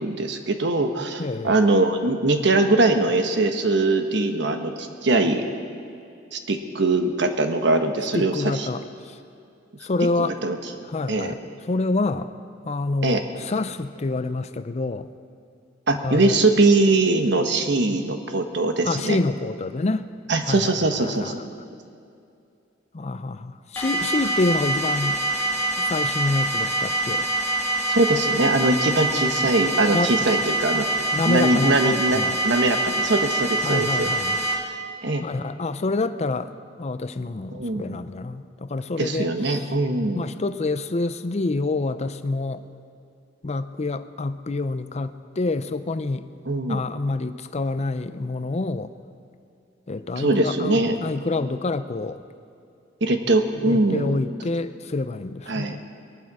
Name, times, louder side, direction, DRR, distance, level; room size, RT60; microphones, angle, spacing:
voice 1, 0.0-5.4 6.3-8.3 10.2-10.6 11.1-11.3 13.0-13.2 15.9-19.2 20.3-21.6 27.9-30.9 31.2-34.1 35.0-35.2 37.5-38.0 39.0-40.2 46.5-46.8 50.1-51.0 53.0-54.2 55.5-55.8, right 2 dB, 65° right, 6 dB, 1.2 m, -22 dB
voice 2, 1.2-1.6 8.1-9.2 9.8-10.4 10.8-12.3 12.6-15.1 15.9-16.4 18.8-20.1 20.4-21.4 22.9-25.2 25.8-27.3 29.9-30.1 31.1-32.4 33.6-34.4 35.2-36.5 36.8-39.6 40.1-42.6 43.4-46.3 46.7-48.9 49.9-52.2 53.6-55.9, left 3 dB, 35° left, 12 dB, 0.5 m, -27 dB
sound 1, 23.8-34.5, right 2 dB, 15° left, 2.1 m, -25 dB
21.0 x 11.5 x 4.8 m, 2.5 s
head